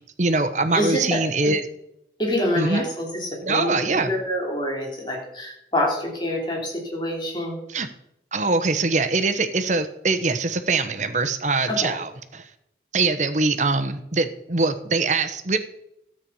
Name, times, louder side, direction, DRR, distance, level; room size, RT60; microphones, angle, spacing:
voice 1, 0.2-1.6 2.6-2.8 3.4-4.1 7.7-7.9 8.3-12.4 12.9-15.6, right 3 dB, 40° right, 9 dB, 1.0 m, -23 dB
voice 2, 0.7-1.5 2.2-7.6 11.7-11.9, left 1 dB, 25° left, -2 dB, 3.2 m, -26 dB
13.5 x 8.7 x 5.6 m, 0.78 s
head